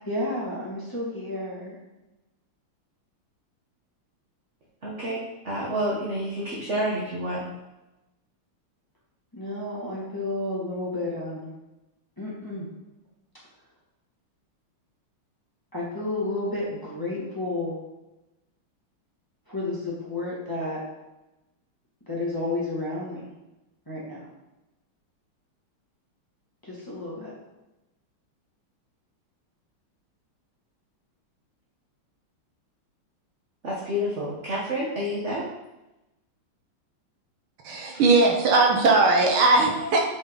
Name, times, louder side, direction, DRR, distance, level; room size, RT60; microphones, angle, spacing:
voice 1, 0.1-1.8 9.3-11.5 12.2-12.7 15.7-17.8 19.5-20.8 22.1-23.3 23.9-24.3 26.7-27.3, left 2 dB, 10° left, -7 dB, 2.1 m, -31 dB
voice 2, 4.8-7.4 33.6-35.4, equal, 40° right, -5 dB, 1.4 m, -29 dB
voice 3, 37.6-40.0, right 3 dB, 70° right, 1 dB, 1.8 m, -19 dB
8.6 x 5.2 x 4.0 m, 0.99 s
omnidirectional pair, 2.4 m